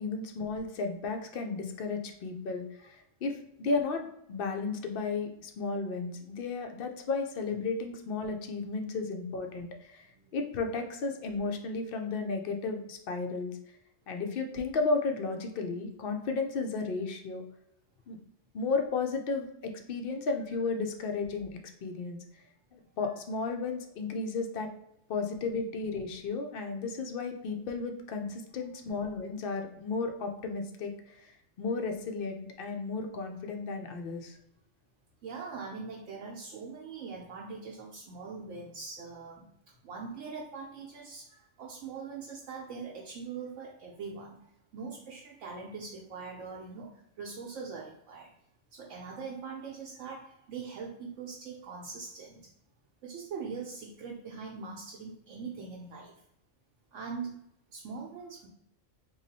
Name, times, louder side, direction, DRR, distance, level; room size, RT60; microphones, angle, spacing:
voice 1, 0.0-13.6 14.1-17.4 18.1-18.2 18.5-22.2 22.7-24.7 25.1-34.4, left 4 dB, 60° left, 5 dB, 0.6 m, -34 dB
voice 2, 10.0-10.4 28.2-28.3 35.2-39.5 39.8-48.3 48.7-52.5 53.0-56.2 56.9-57.4 57.7-58.5, right 5 dB, 75° right, -3 dB, 1.0 m, -42 dB
3.1 x 2.3 x 4.0 m, 0.78 s
omnidirectional pair, 1.3 m